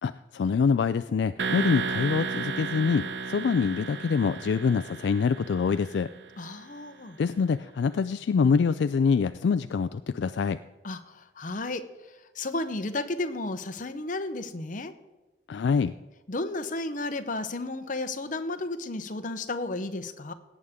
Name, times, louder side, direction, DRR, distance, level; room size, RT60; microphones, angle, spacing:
voice 1, 0.0-6.1 7.2-10.6 15.5-15.9, left 5 dB, 65° left, 12 dB, 0.3 m, -25 dB
sound 1, 1.4-6.3, right 4 dB, 65° right, 0.7 m, -33 dB
voice 2, 6.4-7.2 10.8-14.9 16.3-20.3, left 2 dB, 45° left, 9 dB, 0.8 m, -33 dB
17.5 x 8.3 x 3.6 m, 1.1 s
head